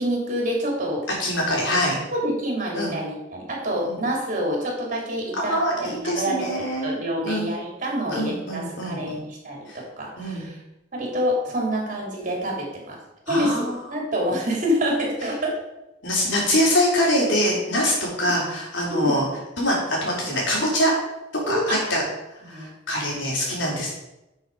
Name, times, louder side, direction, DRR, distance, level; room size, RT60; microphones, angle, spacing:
voice 1, 0.0-1.0 1.5-1.6 2.1-10.6 10.9-13.0 13.3-15.6 18.2-18.4 18.9-19.2 21.5-21.8 22.4-22.7, equal, 45° right, -1 dB, 3.6 m, -27 dB
voice 2, 1.2-2.0 2.7-3.0 3.9-4.0 5.5-6.9 7.2-7.5 8.1-9.2 9.7-9.8 10.2-10.5 13.3-13.7 16.0-19.2 19.6-20.9 21.5-22.0 22.5-23.9, equal, 75° left, -2 dB, 3.9 m, -24 dB
11.5 x 6.4 x 5.0 m, 0.94 s
head